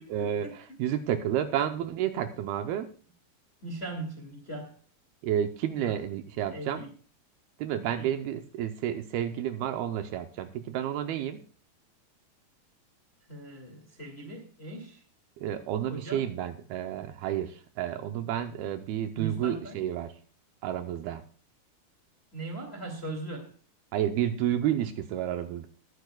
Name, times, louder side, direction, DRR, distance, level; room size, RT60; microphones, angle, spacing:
voice 1, 0.1-2.9 5.2-6.8 7.6-11.4 15.4-20.2 20.6-21.3 23.9-25.7, right 10 dB, 80° right, 2.5 m, -30 dB
voice 2, 3.6-4.7 5.8-5.9 6.5-6.9 13.3-15.0 15.9-16.2 19.1-19.8 22.3-23.5, right 2 dB, 25° left, 1.5 m, -39 dB
19.5 x 9.6 x 2.3 m
omnidirectional pair, 4.8 m